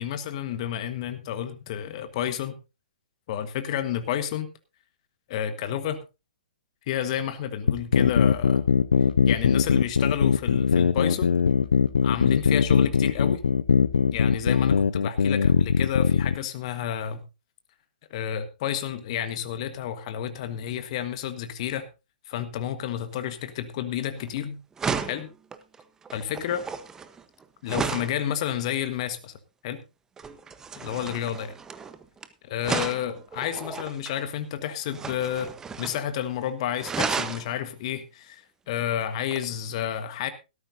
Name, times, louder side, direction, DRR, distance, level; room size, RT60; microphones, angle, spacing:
voice 1, 0.0-2.6 3.3-4.5 5.3-6.0 6.9-8.6 9.3-11.3 12.0-13.4 14.1-17.2 18.1-21.9 22.3-24.6 25.1-25.3 26.1-26.6 27.6-29.3 29.6-29.8 30.7-31.5 32.5-40.3, left 10 dB, 45° left, 10 dB, 1.4 m, -30 dB
sound 1, 7.7-16.4, left 6 dB, 70° left, 0.7 m, -21 dB
sound 2, 24.2-24.4 24.8-28.2 30.2-32.3 32.6-34.2 34.9-36.1 36.3-36.4 36.8-37.5 39.3-39.4, right 5 dB, 10° right, 1.0 m, -33 dB
17.5 x 13.5 x 2.7 m, 0.28 s
figure-of-eight pair, 120°, 5 cm